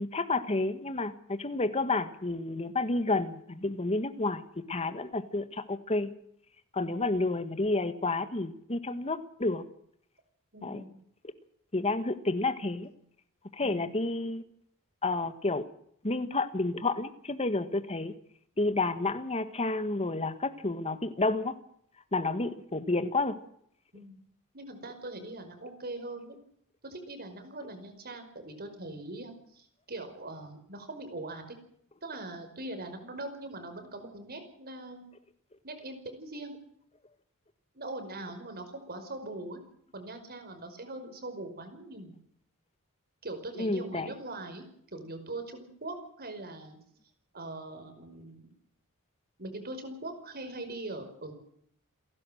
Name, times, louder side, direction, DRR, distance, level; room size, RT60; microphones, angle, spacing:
voice 1, 0.0-4.4 4.7-6.1 6.7-9.6 10.6-10.8 11.7-12.9 13.5-14.4 15.0-15.6 16.0-18.1 18.6-21.5 22.1-23.4 43.6-44.1, left 2 dB, 30° left, 10 dB, 1.6 m, -30 dB
voice 2, 10.5-11.0 13.6-14.0 23.9-24.2 24.5-26.4 26.8-31.6 32.0-35.1 35.6-36.6 37.7-39.6 39.9-42.1 43.2-44.6 44.9-46.8 47.3-48.5 49.4-51.3, right 2 dB, 45° right, 7 dB, 5.3 m, -41 dB
29.5 x 11.5 x 7.8 m, 0.69 s
head